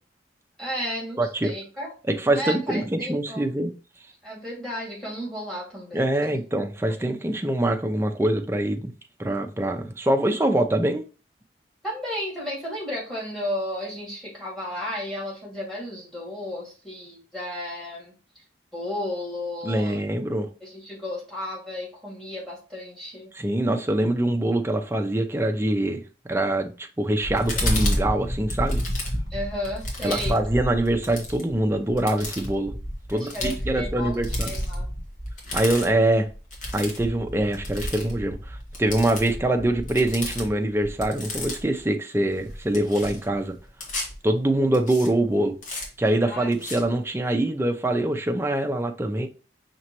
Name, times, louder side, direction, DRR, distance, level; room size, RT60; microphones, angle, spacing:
voice 1, 0.6-1.9 2.3-3.5 4.2-6.4 11.8-18.1 18.7-20.0 20.6-23.3 29.3-30.4 33.1-34.9 46.2-46.5, left 1 dB, ahead, 2.0 m, -33 dB
voice 2, 1.2-1.5 2.1-3.7 5.9-8.9 9.2-11.0 19.6-20.5 23.3-26.0 26.3-28.8 30.0-32.7 33.1-34.5 35.5-36.3 36.7-43.5 44.2-45.6 46.0-49.3, right 1 dB, 15° right, 0.5 m, -24 dB
sound 1, 27.2-41.8 42.3-44.2 44.7-45.1 45.6-45.9 46.5-46.8, left 1 dB, 45° left, 1.3 m, -31 dB
5.5 x 2.9 x 2.9 m
head